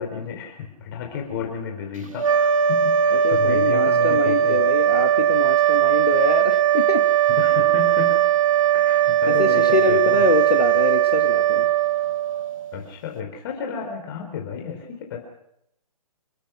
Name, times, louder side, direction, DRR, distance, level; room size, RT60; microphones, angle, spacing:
voice 1, 0.0-4.6 7.4-8.3 8.7-10.2 12.7-15.2, left 7 dB, 35° left, 2 dB, 4.6 m, -32 dB
sound 1, 2.1-12.8, right 10 dB, 55° right, 1.9 m, -19 dB
voice 2, 3.1-7.0 9.3-11.7, left 4 dB, 75° left, 5 dB, 2.1 m, -25 dB
30.0 x 17.5 x 6.1 m, 0.79 s
figure-of-eight pair, 135°, 20 cm